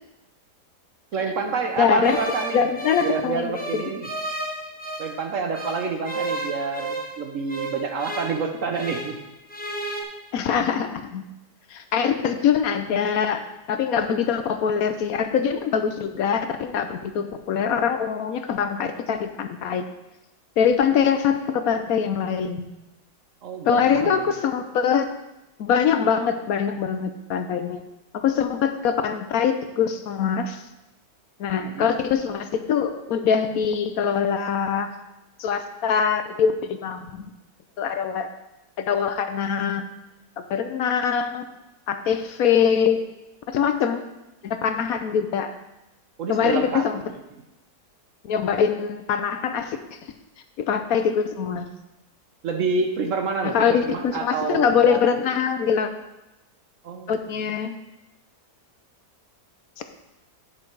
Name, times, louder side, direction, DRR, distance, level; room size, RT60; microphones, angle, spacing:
voice 1, 1.1-2.6 3.0-4.1 5.0-9.2 23.4-24.2 31.6-31.9 46.2-47.1 52.4-55.3 56.8-57.1 57.4-57.5, right 4 dB, 60° right, 5 dB, 1.0 m, -28 dB
voice 2, 1.8-2.2 2.5-3.8 10.3-11.2 11.7-19.8 20.6-22.7 23.7-25.1 25.6-27.8 28.1-30.6 31.4-34.9 35.4-37.3 37.8-38.3 38.8-39.8 40.5-41.5 41.9-43.0 43.5-44.0 44.4-45.5 46.3-47.0 48.3-49.8 50.7-51.7 53.4-55.9 57.1-57.7, left 7 dB, 70° left, 8 dB, 1.0 m, -23 dB
sound 1, 2.0-5.2 5.5-9.2 9.5-10.0, right 2 dB, 5° left, 0.9 m, -33 dB
9.7 x 5.7 x 4.6 m, 0.97 s
omnidirectional pair, 1.8 m